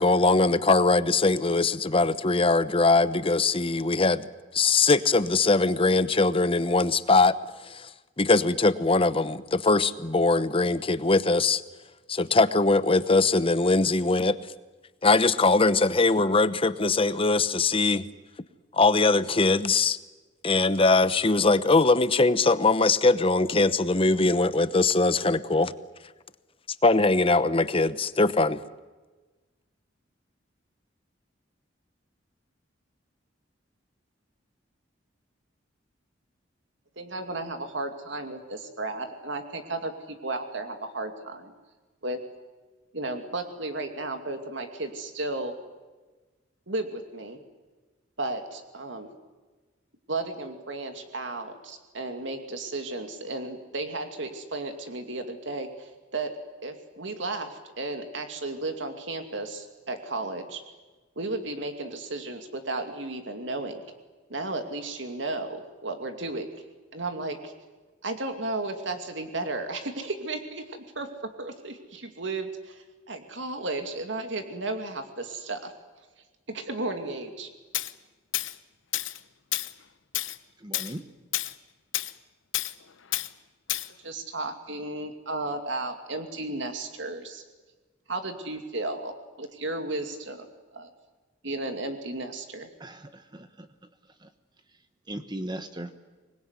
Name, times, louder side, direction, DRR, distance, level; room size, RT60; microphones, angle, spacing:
voice 1, 0.0-4.3 4.5-7.3 7.7-7.9 8.2-11.6 12.1-14.4 15.0-18.0 18.7-20.0 20.4-25.7 26.8-28.6, left 3 dB, 30° left, 14 dB, 0.9 m, -21 dB
voice 2, 37.0-41.5 42.0-42.2 42.9-45.5 46.7-47.4 48.2-49.1 50.1-56.3 56.6-60.6 61.2-63.8 64.3-66.5 66.9-67.5 68.0-71.1 71.4-75.7 76.5-77.5 84.0-87.4 88.1-90.5 90.7-90.9 91.4-92.7, right 2 dB, 70° right, 6 dB, 2.5 m, -34 dB
Tools, 77.7-77.9 78.3-78.5 78.9-79.2 79.5-79.7 80.1-80.4 80.7-80.9 81.3-81.5 81.9-82.1 82.5-82.7 83.1-83.3 83.7-83.9, left 14 dB, 85° left, 0.9 m, -29 dB
voice 3, 80.6-81.0 92.8-93.7 94.2-94.3 95.1-95.9, right 1 dB, 25° right, 8 dB, 1.2 m, -38 dB
25.5 x 20.5 x 9.7 m, 1.3 s
head